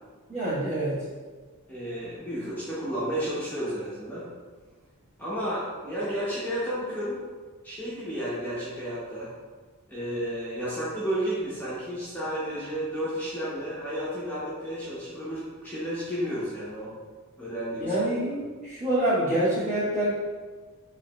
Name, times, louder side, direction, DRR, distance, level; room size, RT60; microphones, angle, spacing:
voice 1, 0.3-1.0 17.8-20.1, right 1 dB, 35° right, -9 dB, 1.3 m, -26 dB
voice 2, 1.7-4.2 5.2-7.2 7.6-9.3 9.9-16.9 17.4-17.9, equal, 10° left, -10 dB, 0.7 m, -32 dB
4.5 x 2.9 x 2.2 m, 1.4 s
head